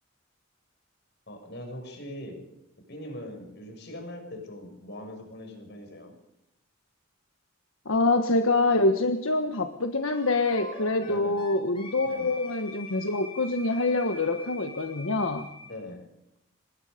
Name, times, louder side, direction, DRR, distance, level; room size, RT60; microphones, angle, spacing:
voice 1, 1.3-2.4 2.9-6.1 11.0-11.4 12.0-12.4 15.6-16.1, left 1 dB, 55° left, 5 dB, 6.3 m, -41 dB
voice 2, 7.8-15.5, left 2 dB, 75° left, 7 dB, 1.4 m, -25 dB
Wind instrument woodwind instrument, 10.1-15.8, left 2 dB, 25° left, 4.2 m, -44 dB
25.0 x 21.5 x 5.2 m, 0.85 s
head